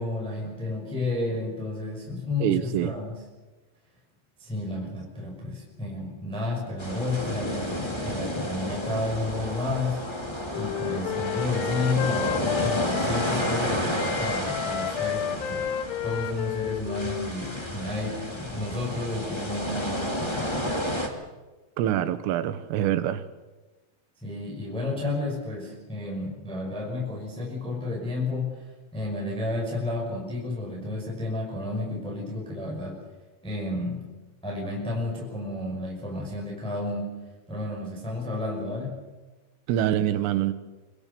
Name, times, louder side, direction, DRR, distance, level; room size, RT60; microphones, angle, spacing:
voice 1, 0.0-3.2 4.4-10.0 10.5-15.7 16.0-20.7 24.2-28.6 28.9-33.0 33.4-34.0 34.4-39.0, left 2 dB, ahead, -2 dB, 5.2 m, -31 dB
voice 2, 2.4-2.9 21.8-23.2 39.7-40.5, right 12 dB, 85° right, 11 dB, 3.9 m, -25 dB
sound 1, 6.8-21.1, equal, 40° left, 0.3 m, -31 dB
Wind instrument woodwind instrument, 10.1-13.6 14.0-17.7, left 9 dB, 75° left, 2.7 m, -32 dB
25.5 x 24.0 x 7.0 m, 1.2 s
omnidirectional pair, 5.7 m